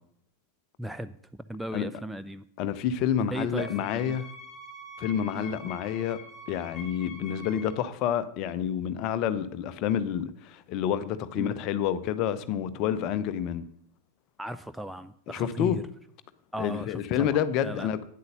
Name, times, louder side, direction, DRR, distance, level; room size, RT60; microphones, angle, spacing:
voice 1, 0.8-1.2 1.5-2.4 3.2-4.2 5.3-5.6 11.3-11.6 14.4-15.8 16.5-17.9, right 1 dB, 5° right, 0.4 m, -37 dB
voice 2, 2.6-4.3 5.0-6.2 6.5-13.7 15.3-15.8 16.6-18.0, left 9 dB, 40° left, 0.8 m, -28 dB
Wind instrument woodwind instrument, 3.6-7.9, left 2 dB, 20° left, 2.5 m, -45 dB
9.4 x 8.0 x 6.6 m
figure-of-eight pair, 90°, 0 cm